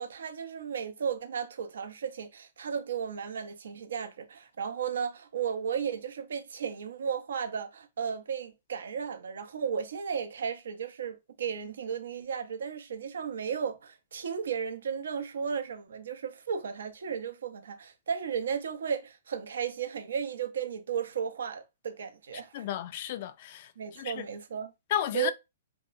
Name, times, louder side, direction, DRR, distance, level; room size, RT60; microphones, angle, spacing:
voice 1, 0.0-22.6 23.8-24.7 25.1-25.3, right 7 dB, 80° right, 0.6 m, -34 dB
voice 2, 22.5-24.3 24.9-25.3, left 11 dB, 50° left, 0.3 m, -33 dB
2.7 x 2.1 x 2.5 m
hypercardioid pair, 135°, 0 cm